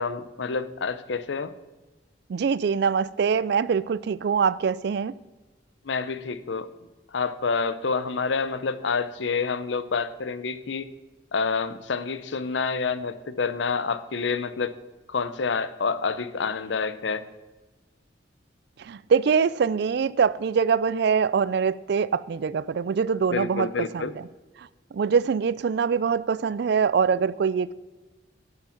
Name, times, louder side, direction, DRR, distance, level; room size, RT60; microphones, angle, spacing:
voice 1, 0.0-1.5 5.8-6.7 7.1-10.9 11.3-14.8 15.1-17.2 23.3-24.1, left 5 dB, 75° left, 14 dB, 0.7 m, -28 dB
voice 2, 2.3-5.1 18.8-23.7 23.9-24.1 24.9-27.7, right 6 dB, 60° right, 19 dB, 0.4 m, -23 dB
11.5 x 7.3 x 5.8 m, 1.2 s
head